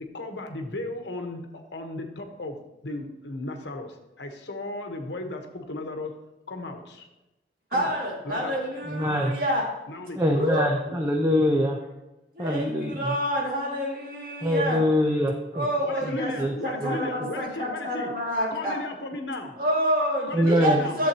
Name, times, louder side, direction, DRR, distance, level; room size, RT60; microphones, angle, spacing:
voice 1, 0.1-2.5 2.8-6.1 6.5-7.1 7.7-7.9 8.2-8.6 9.0-9.3 9.9-10.5 15.8-18.1 18.5-19.6 20.3-21.0, left 2 dB, 80° left, 4 dB, 1.1 m, -35 dB
voice 2, 7.7-9.7 10.3-11.0 12.3-14.8 15.5-16.3 16.6-18.8 19.6-21.1, equal, 50° right, -3 dB, 2.2 m, -28 dB
voice 3, 8.9-9.4 10.2-11.8 12.4-13.1 14.4-15.7 16.0-16.6 16.8-17.3 20.3-20.9, equal, 15° right, 3 dB, 0.5 m, -24 dB
12.0 x 7.1 x 2.9 m, 1.0 s
head